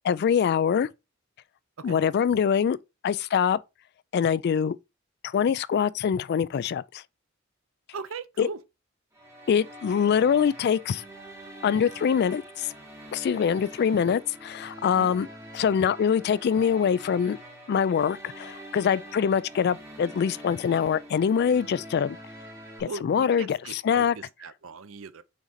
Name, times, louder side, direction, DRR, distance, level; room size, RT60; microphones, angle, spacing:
voice 1, 0.0-0.9 1.8-2.8 3.0-3.6 4.1-4.8 5.2-7.0 8.4-8.5 9.5-11.0 11.6-12.7 13.1-15.3 15.5-17.4 17.7-22.2 22.8-24.2, left 7 dB, 55° left, 0.3 m, -24 dB
voice 2, 7.9-8.6 14.9-15.2 22.9-25.2, right 4 dB, 80° right, 0.6 m, -39 dB
sound 1, 9.1-22.8, right 1 dB, 15° right, 2.2 m, -45 dB
6.0 x 3.8 x 4.1 m
head